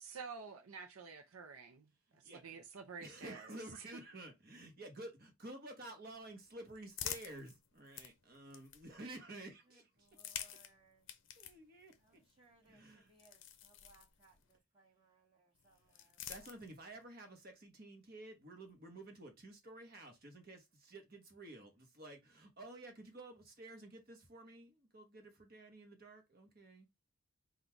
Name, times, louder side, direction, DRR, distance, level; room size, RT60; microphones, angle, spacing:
voice 1, 0.0-1.8 2.4-3.6, right 5 dB, 90° right, 0.7 m, -49 dB
voice 2, 3.0-9.9 11.4-12.2 12.7-13.1 16.0-26.9, right 1 dB, 45° right, 1.2 m, -52 dB
sound 1, 6.1-9.2 10.0-14.6 15.5-17.0, left 10 dB, 60° left, 0.6 m, -50 dB
voice 3, 9.6-11.2 12.0-16.7, right 3 dB, 25° right, 1.8 m, -69 dB
3.9 x 2.4 x 4.4 m
head